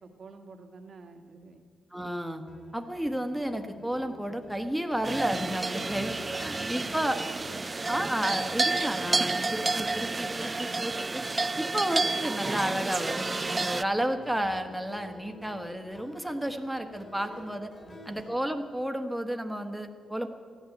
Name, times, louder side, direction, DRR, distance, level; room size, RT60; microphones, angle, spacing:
voice 1, 0.0-1.7 5.7-5.9 6.6-6.9 11.7-11.8 17.2-17.4 17.8-18.2, right 4 dB, 50° right, 4 dB, 1.4 m, -49 dB
voice 2, 1.9-2.4 2.7-7.2 7.9-11.2 11.6-17.7 18.1-20.3, right 1 dB, 5° right, 5 dB, 1.3 m, -32 dB
sound 1, 2.5-18.4, left 1 dB, 35° left, 3.1 m, -50 dB
sound 2, 5.0-13.8, right 3 dB, 25° right, 0.3 m, -30 dB
15.5 x 11.0 x 7.9 m, 2.1 s
cardioid pair, 85°, 0 cm